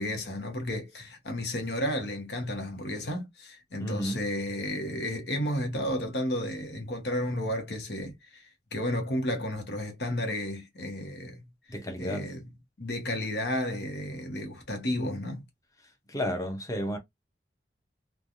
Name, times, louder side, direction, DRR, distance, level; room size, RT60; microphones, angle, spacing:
voice 1, 0.0-15.4, left 1 dB, 70° left, 1.1 m, -33 dB
voice 2, 3.8-4.2 11.7-12.3 16.1-17.0, equal, 20° left, 0.7 m, -32 dB
3.3 x 2.3 x 2.5 m
head